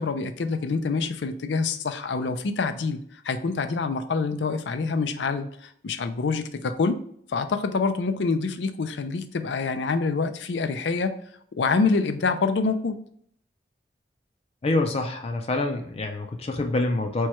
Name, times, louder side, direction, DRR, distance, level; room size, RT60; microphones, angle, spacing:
voice 1, 0.0-3.0 3.2-7.0 7.3-11.2 11.5-13.0, left 4 dB, 85° left, 9 dB, 0.5 m, -26 dB
voice 2, 14.6-17.3, left 2 dB, 35° left, 3 dB, 0.5 m, -26 dB
4.5 x 2.2 x 4.3 m, 0.64 s
head